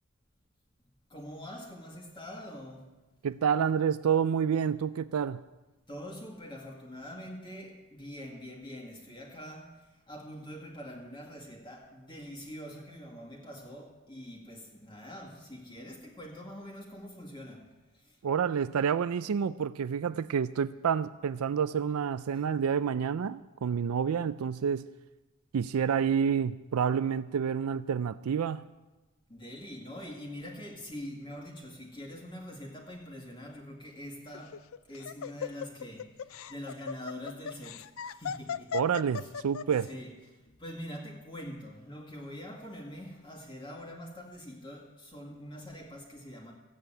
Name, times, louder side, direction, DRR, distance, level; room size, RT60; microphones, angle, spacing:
voice 1, 1.1-2.9 5.9-9.7 10.1-17.6 29.3-34.6 34.9-36.1 36.5-38.7 39.2-39.3 39.9-40.1 40.6-46.5, equal, 20° left, -1 dB, 2.0 m, -44 dB
voice 2, 3.2-5.4 18.2-24.9 25.5-28.6 38.7-39.9, right 7 dB, 90° right, 15 dB, 0.4 m, -28 dB
Laughter, 34.3-39.8, left 7 dB, 75° left, 0.4 m, -37 dB
15.0 x 8.3 x 8.8 m, 1.1 s
head